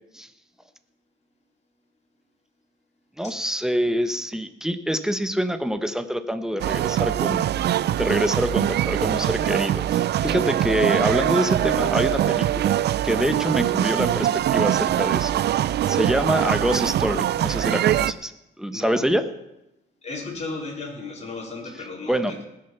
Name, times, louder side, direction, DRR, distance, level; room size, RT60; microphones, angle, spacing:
voice 1, 3.2-7.5 7.9-12.7 13.0-15.4 15.9-18.3 18.6-19.3 22.1-22.4, equal, 5° right, 9 dB, 1.1 m, -25 dB
sound 1, 6.6-18.1, right 12 dB, 60° right, 0.4 m, -23 dB
voice 2, 18.7-19.1 20.0-22.4, left 3 dB, 35° left, -2 dB, 4.0 m, -34 dB
19.5 x 6.7 x 5.8 m, 0.90 s
cardioid pair, 90°, 20 cm